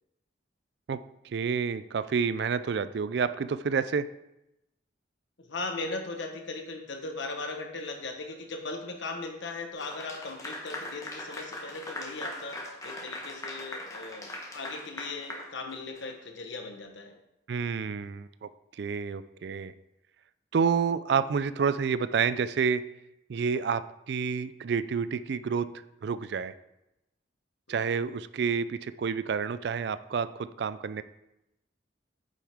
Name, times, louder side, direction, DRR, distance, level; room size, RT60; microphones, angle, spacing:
voice 1, 0.9-4.1 17.5-18.5 18.8-19.7 20.5-22.8 23.3-25.7 26.0-26.5 27.7-31.0, right 6 dB, 60° right, 14 dB, 0.3 m, -29 dB
voice 2, 5.5-17.2 27.7-27.9, left 3 dB, 70° left, 4 dB, 1.2 m, -38 dB
Clapping / Applause, 9.8-16.1, left 1 dB, 15° left, 1.1 m, -40 dB
9.2 x 7.2 x 3.5 m, 0.89 s
head